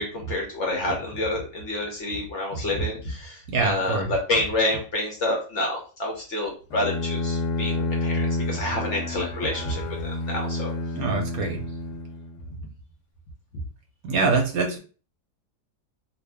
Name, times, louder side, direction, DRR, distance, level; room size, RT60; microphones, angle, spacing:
voice 1, 0.0-10.7 13.5-13.6, left 1 dB, 55° left, 0 dB, 0.9 m, -28 dB
voice 2, 3.5-4.1 10.9-11.7 14.0-14.8, right 4 dB, 70° right, 2 dB, 1.0 m, -24 dB
Bowed string instrument, 6.7-12.5, left 2 dB, 75° left, 1.2 m, -29 dB
2.6 x 2.5 x 3.3 m, 0.37 s
omnidirectional pair, 1.8 m